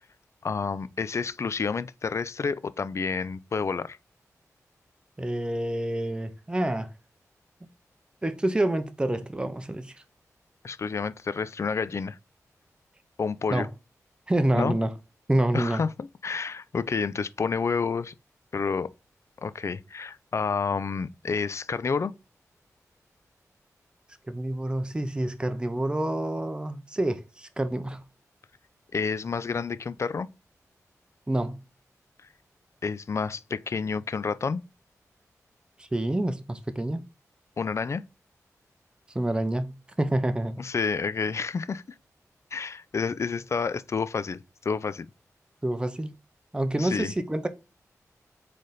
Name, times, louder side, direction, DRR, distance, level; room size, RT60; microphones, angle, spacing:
voice 1, 0.4-4.0 10.6-12.2 13.2-13.7 14.5-14.8 15.5-18.1 18.5-18.9 19.4-22.1 28.9-30.3 32.8-34.6 37.6-38.0 40.6-41.8 42.5-45.1 46.8-47.1, left 5 dB, 50° left, 0.4 m, -29 dB
voice 2, 5.2-6.9 8.2-10.0 13.5-13.7 14.3-14.9 15.3-15.8 24.3-28.0 31.3-31.6 35.8-37.0 39.1-40.6 45.6-46.1 46.5-47.5, right 1 dB, 15° right, 0.6 m, -27 dB
4.0 x 3.3 x 3.8 m
cardioid pair, 65°, 6 cm